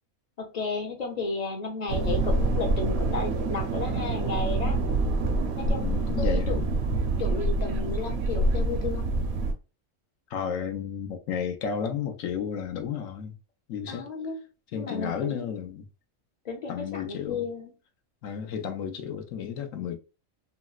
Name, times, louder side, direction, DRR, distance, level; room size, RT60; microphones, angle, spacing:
voice 1, 0.4-4.8 5.5-6.7 7.2-9.1 13.9-14.4 14.7-15.5 16.4-17.7, left 3 dB, 40° left, 0.6 m, -33 dB
sound 1, 1.9-9.5, right 2 dB, 65° right, 0.7 m, -26 dB
voice 2, 5.8-6.6 10.3-13.3 13.7-14.0 14.7-15.8 16.7-17.4 18.2-20.0, left 7 dB, 85° left, 1.0 m, -32 dB
3.8 x 2.0 x 2.3 m
omnidirectional pair, 1.4 m